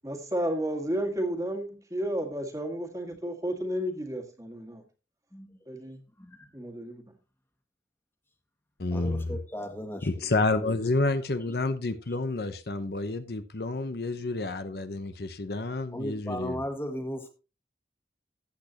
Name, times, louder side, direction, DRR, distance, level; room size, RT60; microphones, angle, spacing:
voice 1, 0.0-4.8 5.7-6.0 6.5-7.0, right 1 dB, 20° right, 1.7 m, -32 dB
voice 2, 6.2-6.5 8.9-10.3 10.6-10.8 15.9-17.3, equal, 15° left, 1.6 m, -36 dB
voice 3, 8.8-9.4 10.0-16.6, left 2 dB, 65° left, 0.8 m, -29 dB
14.5 x 8.5 x 2.9 m
head